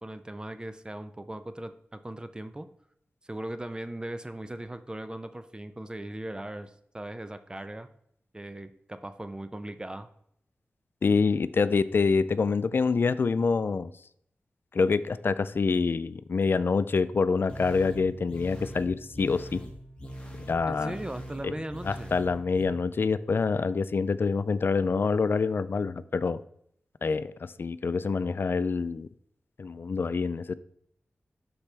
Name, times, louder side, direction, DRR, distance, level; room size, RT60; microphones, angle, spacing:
voice 1, 0.0-2.7 3.2-7.9 8.3-10.1 20.7-22.1, right 1 dB, 20° right, 11 dB, 0.6 m, -38 dB
voice 2, 11.0-13.9 14.7-19.6 20.5-20.9 21.4-21.5 21.8-26.4 27.0-29.1 29.6-30.5, left 4 dB, 60° left, 15 dB, 0.4 m, -26 dB
sound 1, 17.5-22.6, equal, 25° left, 1.6 m, -42 dB
11.5 x 4.3 x 3.4 m, 0.70 s
wide cardioid pair, 70°, 4 cm